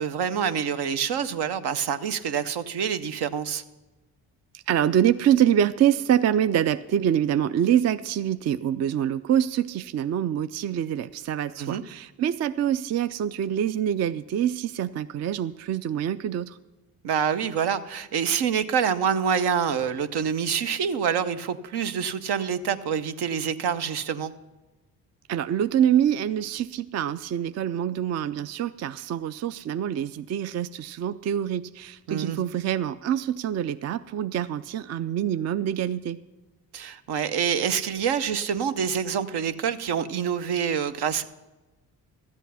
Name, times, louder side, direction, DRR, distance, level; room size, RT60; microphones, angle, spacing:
voice 1, 0.0-3.6 11.6-11.8 17.0-24.3 32.1-32.4 36.7-41.2, right 7 dB, 65° right, 11 dB, 0.7 m, -26 dB
voice 2, 4.5-16.6 25.3-36.2, right 10 dB, 40° right, 14 dB, 0.4 m, -25 dB
13.0 x 8.2 x 5.6 m, 1.1 s
supercardioid pair, 55°, 42 cm